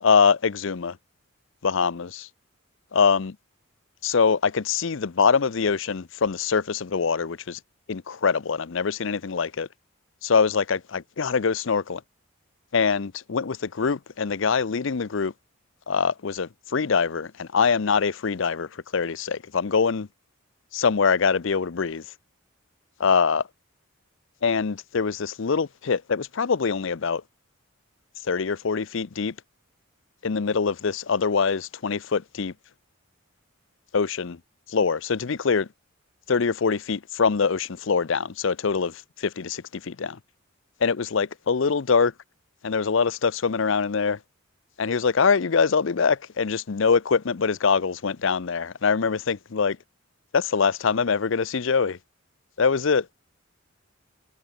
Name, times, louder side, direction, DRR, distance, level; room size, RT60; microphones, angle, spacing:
voice 1, 0.0-1.0 1.6-2.3 2.9-3.4 4.0-7.6 7.9-9.7 10.2-12.0 12.7-15.3 15.9-20.1 20.7-22.0 23.0-23.4 24.4-27.2 28.3-29.3 30.2-32.5 33.9-34.4 34.7-35.7 36.3-40.2 40.8-42.1 42.6-44.2 44.8-49.8 50.3-52.0 52.6-53.1, left 5 dB, 60° left, 0.6 m, -24 dB
head